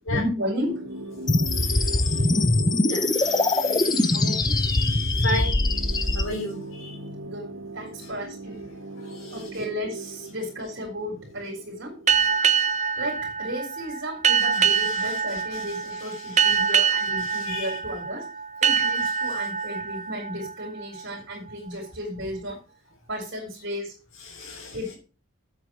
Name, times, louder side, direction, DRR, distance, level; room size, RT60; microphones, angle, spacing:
voice 1, 0.1-0.7 3.8-4.6 7.2-8.6 9.3-11.9 13.0-18.2 18.6-22.6 23.1-23.9 24.7-24.9, equal, 55° right, -2 dB, 4.0 m, -33 dB
sound 1, 0.7-12.6, right 2 dB, 80° right, 2.5 m, -39 dB
sound 2, 1.3-6.2, left 2 dB, 20° left, 0.7 m, -22 dB
voice 2, 1.5-2.4 2.9-7.0 9.0-9.5 14.6-16.7 17.2-17.8 24.2-24.9, left 2 dB, 75° left, -3 dB, 3.5 m, -36 dB
sound 3, 12.1-21.4, right 6 dB, 35° right, 0.6 m, -25 dB
8.5 x 7.9 x 6.2 m, 0.35 s
head